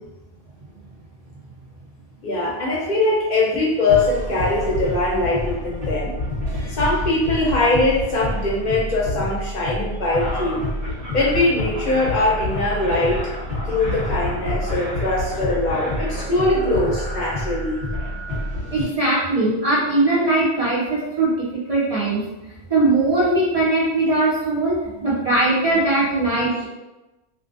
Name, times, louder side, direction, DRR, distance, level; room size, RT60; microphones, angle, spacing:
voice 1, 2.2-6.1 6.7-10.7 11.1-13.3 13.7-17.8 18.8-18.9, left 2 dB, 55° left, -4 dB, 0.6 m, -21 dB
sound 1, 3.9-18.8, left 1 dB, 85° right, 1.4 m, -28 dB
voice 2, 18.7-26.7, right 2 dB, 45° right, -7 dB, 0.5 m, -20 dB
2.5 x 2.2 x 2.5 m, 1.0 s
omnidirectional pair, 1.0 m